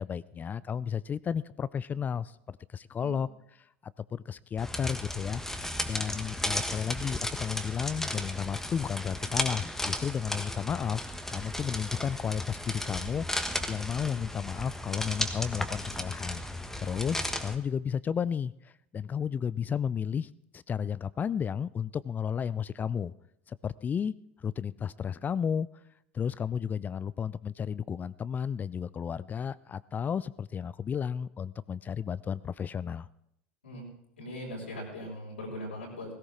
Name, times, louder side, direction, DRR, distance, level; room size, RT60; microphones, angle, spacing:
voice 1, 0.0-3.3 4.1-5.4 5.8-13.3 13.7-16.4 16.8-23.1 23.5-24.1 24.4-25.7 26.1-33.1, left 7 dB, 25° left, 20 dB, 0.4 m, -33 dB
sound 1, 4.6-17.5, left 1 dB, 5° left, 1.4 m, -35 dB
voice 2, 34.2-36.1, equal, 85° left, -5 dB, 5.8 m, -40 dB
17.0 x 16.5 x 3.8 m, 0.75 s
hypercardioid pair, 75°, 6 cm